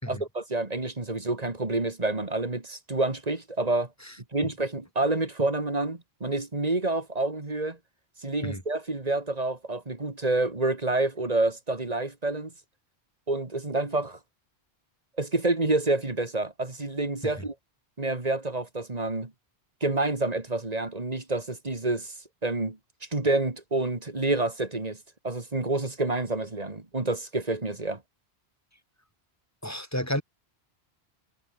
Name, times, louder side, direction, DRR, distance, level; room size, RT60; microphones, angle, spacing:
voice 1, 0.1-3.9 4.3-7.8 8.2-12.5 13.3-14.2 15.2-17.5 18.0-19.3 19.8-22.1 22.4-22.8 23.1-25.0 25.2-28.0, right 2 dB, 35° right, 2.4 m, -28 dB
voice 2, 29.6-30.2, equal, 15° left, 7.6 m, -31 dB
omnidirectional pair, 1.1 m